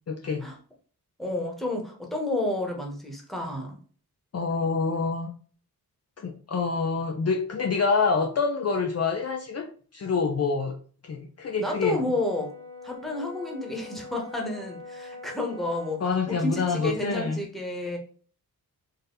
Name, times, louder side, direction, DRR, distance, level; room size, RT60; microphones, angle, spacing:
voice 1, 0.1-0.4 4.3-5.3 6.2-10.7 11.0-12.0 16.0-17.4, left 4 dB, 40° left, 3 dB, 0.6 m, -27 dB
voice 2, 1.2-3.8 11.6-12.5 12.8-18.0, left 2 dB, ahead, 0 dB, 1.3 m, -30 dB
Brass instrument, 11.7-16.0, left 3 dB, 90° right, 1.1 m, -43 dB
4.0 x 2.6 x 4.0 m, 0.43 s
cardioid pair, 65°, 38 cm